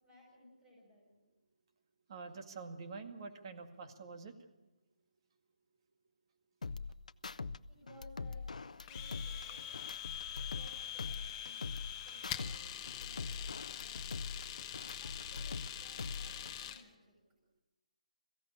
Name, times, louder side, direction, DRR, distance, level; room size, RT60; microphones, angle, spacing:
voice 1, 0.0-1.1 7.7-9.6 10.5-11.7 12.0-14.3 15.0-17.1, left 1 dB, 10° right, -3 dB, 5.7 m, -60 dB
voice 2, 2.1-4.3, right 4 dB, 40° right, 6 dB, 2.1 m, -46 dB
sound 1, 6.6-7.6 7.9-10.7 11.0-12.6 12.9-15.7 16.0-16.6, left 4 dB, 70° left, 0.7 m, -43 dB
Domestic sounds home sounds, 8.9-16.8, left 10 dB, 20° left, 1.1 m, -44 dB
22.0 x 16.0 x 8.6 m, 1.1 s
figure-of-eight pair, 150°, 4 cm